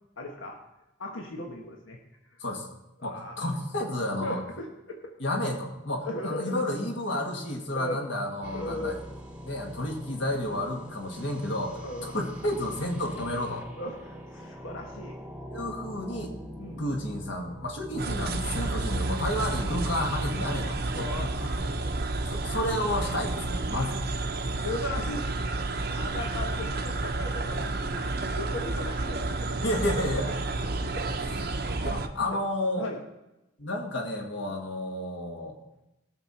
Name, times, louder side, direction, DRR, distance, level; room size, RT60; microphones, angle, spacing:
voice 1, 0.2-0.6 1.0-2.0 3.0-3.5 4.2-5.1 6.0-6.6 7.7-8.0 8.5-9.0 11.7-12.1 13.8-15.2 16.6-16.8 19.4-19.5 20.9-21.4 21.8-22.3 24.4-25.3 25.9-29.6 30.9-31.0 31.7-32.0 32.8-33.0, left 1 dB, 85° left, 2 dB, 1.3 m, -37 dB
voice 2, 3.0-4.4 5.2-9.0 9.4-13.7 15.5-16.3 16.8-21.6 22.3-24.1 29.6-30.9 31.8-32.9 33.6-35.6, left 1 dB, 65° left, 1 dB, 1.9 m, -31 dB
sound 1, 8.4-22.5, equal, 5° right, 1.1 m, -43 dB
sound 2, 18.0-32.1, right 2 dB, 50° right, 0.7 m, -31 dB
17.5 x 6.5 x 4.3 m, 0.92 s
head